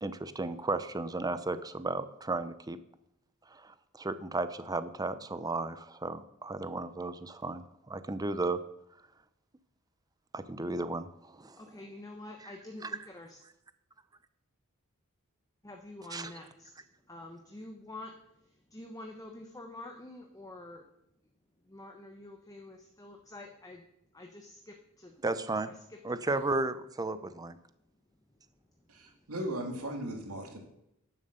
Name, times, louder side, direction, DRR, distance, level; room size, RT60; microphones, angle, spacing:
voice 1, 0.0-2.8 3.5-8.6 10.3-11.6 12.8-12.9 16.1-16.3 25.2-25.7 26.0-27.6, right 2 dB, 15° right, 13 dB, 0.6 m, -34 dB
voice 2, 11.5-13.4 15.6-20.8 21.6-23.8 24.1-25.2 25.7-26.0 26.3-26.5 27.1-27.2 28.8-29.3, left 2 dB, 15° left, 3 dB, 1.0 m, -48 dB
voice 3, 28.9-30.6, right 1 dB, 80° right, 3 dB, 2.3 m, -37 dB
10.5 x 7.3 x 6.7 m, 0.81 s
head